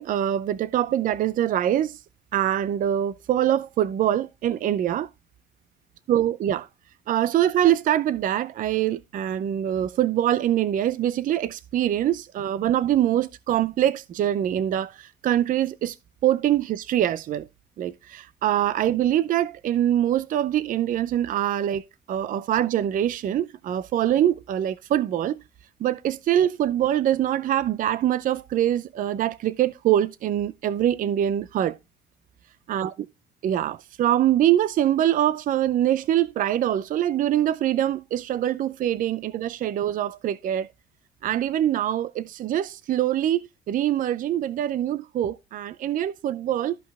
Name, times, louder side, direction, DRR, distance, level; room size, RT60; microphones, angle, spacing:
voice 1, 0.0-2.0 2.3-5.1 6.1-6.7 7.1-16.0 16.2-17.5 17.8-25.4 25.8-31.8 32.7-32.9 33.4-40.7 41.2-46.8, right 11 dB, 55° right, 0.6 m, -24 dB
13.5 x 5.4 x 3.5 m
cardioid pair, 110°, 17 cm